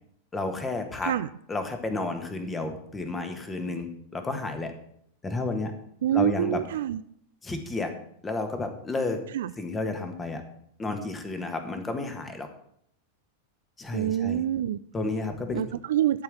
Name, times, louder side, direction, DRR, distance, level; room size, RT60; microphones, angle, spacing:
voice 1, 0.3-1.1 1.5-4.7 5.2-5.7 6.1-6.6 7.4-7.9 8.2-9.2 9.6-10.4 10.8-12.5 13.8-14.4 14.9-15.6, left 3 dB, 15° left, 7 dB, 1.5 m, -31 dB
voice 2, 6.0-7.0 9.3-9.5 13.9-14.8 15.5-16.2, right 12 dB, 60° right, 14 dB, 0.3 m, -26 dB
12.0 x 4.7 x 7.4 m, 0.70 s
figure-of-eight pair, 90°, 0 cm